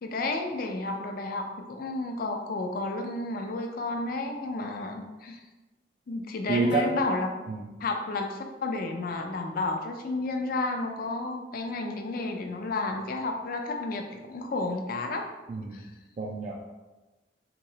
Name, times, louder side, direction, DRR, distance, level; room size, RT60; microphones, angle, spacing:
voice 1, 0.0-5.4 6.1-7.3 7.8-15.3 15.7-15.9, left 2 dB, 50° left, 4 dB, 0.4 m, -31 dB
voice 2, 6.5-6.9 7.5-7.7 15.5-15.8 16.2-16.6, right 3 dB, 40° right, -2 dB, 0.3 m, -28 dB
3.5 x 3.0 x 2.8 m, 1.1 s
head